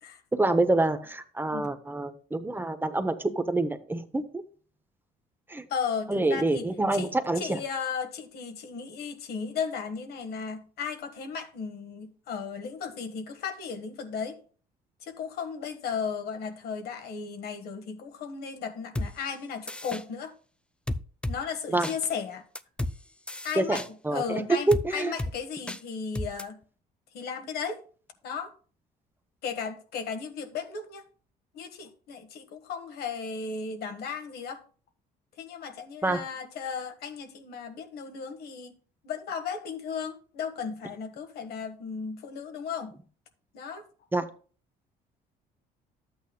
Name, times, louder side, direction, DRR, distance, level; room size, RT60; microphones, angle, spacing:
voice 1, 0.3-4.2 5.5-5.7 6.1-7.6 21.7-21.9 23.6-24.2 24.5-25.1 36.0-36.2 44.1-44.2, right 2 dB, 10° right, 0.8 m, -26 dB
voice 2, 5.7-6.7 6.9-14.4 15.0-20.3 21.3-22.4 23.4-23.8 24.1-26.6 27.1-27.8 28.2-28.5 29.4-31.0 31.5-34.6 35.4-38.7 39.0-42.9 43.5-43.8, left 6 dB, 70° left, 1.4 m, -35 dB
sound 1, 19.0-19.1 19.7-20.0 20.9-21.4 21.8-22.0 22.6-22.9 23.3-23.9 24.7-24.9 25.2-25.3 25.7-25.8 26.2-26.4, left 1 dB, 5° left, 0.4 m, -32 dB
12.5 x 8.5 x 2.3 m
cardioid pair, 110°, 17 cm